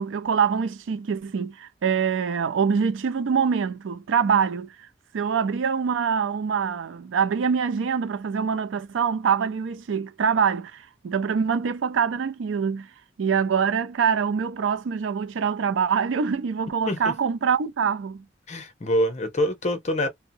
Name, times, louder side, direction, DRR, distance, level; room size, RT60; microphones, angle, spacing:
voice 1, 0.0-4.7 5.1-12.9 13.2-18.2, right 6 dB, 80° right, 0.4 m, -24 dB
voice 2, 18.5-20.1, equal, 35° left, 0.7 m, -25 dB
2.6 x 2.1 x 2.6 m
head